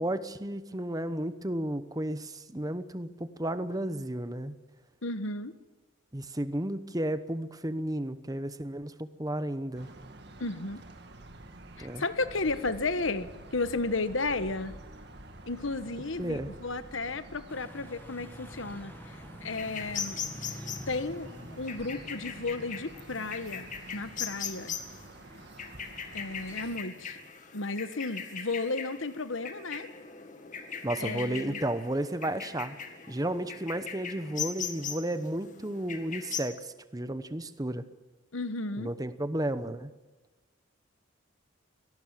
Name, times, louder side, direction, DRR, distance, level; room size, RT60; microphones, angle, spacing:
voice 1, 0.0-4.6 6.1-9.9 11.8-12.0 16.2-16.5 30.8-32.8 33.1-37.9 38.8-39.9, right 1 dB, 20° right, 12 dB, 1.0 m, -33 dB
voice 2, 5.0-5.5 10.4-10.8 11.8-14.8 15.5-20.2 20.9-21.3 21.6-24.8 26.1-27.2 27.5-29.9 31.0-31.6 38.3-38.9, left 3 dB, 75° left, 12 dB, 1.3 m, -33 dB
sound 1, 9.7-26.8, right 2 dB, 55° right, 2.1 m, -49 dB
sound 2, 17.5-27.3, equal, 10° left, 1.3 m, -49 dB
sound 3, 19.5-36.4, left 7 dB, 40° left, 2.0 m, -40 dB
23.5 x 18.5 x 7.6 m, 1.2 s
head